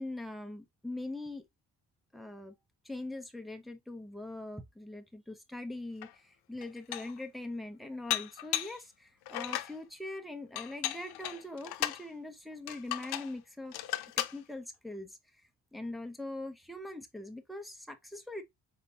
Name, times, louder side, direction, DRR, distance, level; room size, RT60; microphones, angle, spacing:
voice 1, 0.0-1.4 2.1-2.5 2.8-13.8 14.2-15.2 15.7-18.4, left 2 dB, ahead, 0.6 m, -42 dB
Dishes pots and pans, 6.0-6.1 6.6-7.2 8.1-8.8 9.3-9.8 10.6-12.0 12.7-13.3 13.7-14.4, left 14 dB, 90° left, 0.6 m, -35 dB
4.2 x 3.6 x 2.7 m
cardioid pair, 140°, 37 cm